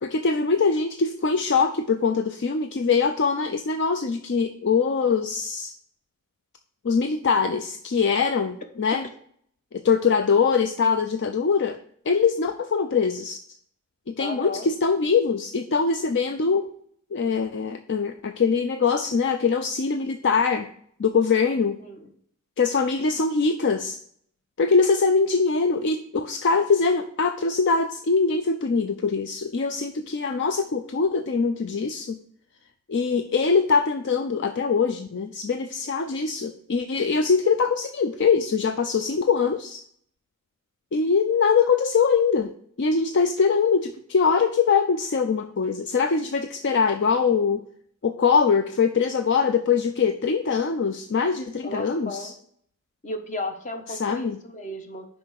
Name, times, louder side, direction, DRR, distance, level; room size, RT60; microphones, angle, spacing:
voice 1, 0.0-5.7 6.8-9.0 9.7-11.8 12.1-13.4 14.1-16.7 17.1-20.7 21.0-21.8 22.6-24.0 24.6-32.2 32.9-39.8 40.9-42.5 42.8-47.6 48.0-52.3 53.9-54.4, left 5 dB, 55° left, 8 dB, 0.5 m, -23 dB
voice 2, 14.2-14.7 21.8-22.1 51.6-52.3 53.0-55.1, left 2 dB, 35° left, 6 dB, 1.2 m, -34 dB
6.0 x 5.0 x 6.4 m, 0.63 s
head